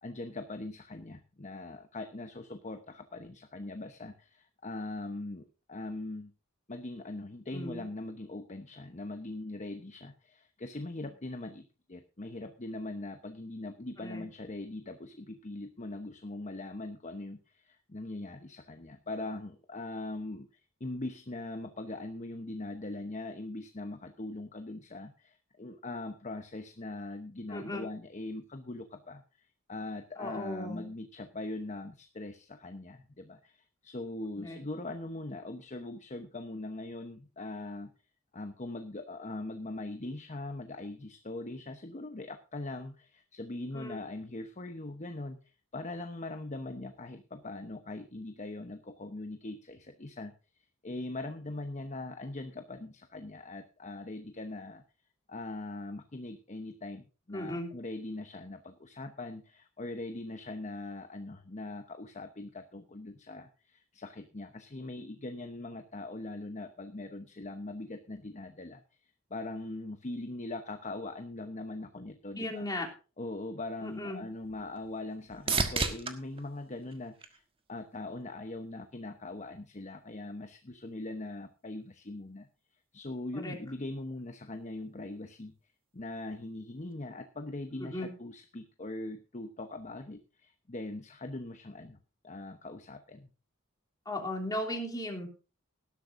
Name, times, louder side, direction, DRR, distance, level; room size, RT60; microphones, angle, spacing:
voice 1, 0.0-6.3 6.7-37.9 38.3-50.3 50.8-54.8 55.3-72.7 73.2-77.4 77.7-82.5 82.9-85.5 85.9-92.0 92.2-93.3, left 2 dB, 35° left, 7 dB, 0.9 m, -41 dB
voice 2, 7.5-7.8 14.0-14.2 27.5-27.9 30.2-30.9 34.3-34.6 43.7-44.0 57.3-57.7 72.3-72.9 73.8-74.3 83.3-83.6 87.8-88.1 94.0-95.3, left 1 dB, 20° left, 0 dB, 3.1 m, -37 dB
sound 1, 73.7-78.0 78.5-79.1 86.9-87.0, right 4 dB, 25° right, 1.5 m, -36 dB
18.5 x 12.0 x 2.6 m, 0.34 s
head